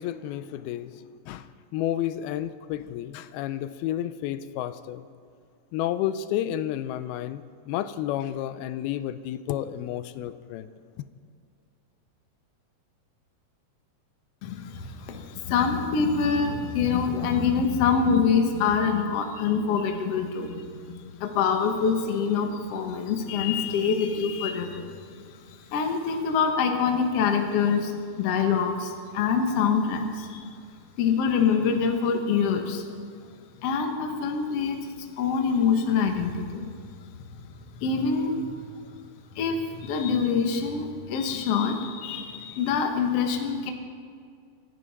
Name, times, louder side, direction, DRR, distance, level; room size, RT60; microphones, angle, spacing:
voice 1, 0.0-5.0 5.7-10.7 11.0-11.1, left 12 dB, 90° left, 2.5 m, -31 dB
voice 2, 14.4-30.5 31.0-32.9 33.6-36.7 37.3-37.4 37.8-38.6 39.3-43.7, left 6 dB, 65° left, 1.6 m, -25 dB
26.0 x 10.0 x 4.1 m
omnidirectional pair, 4.3 m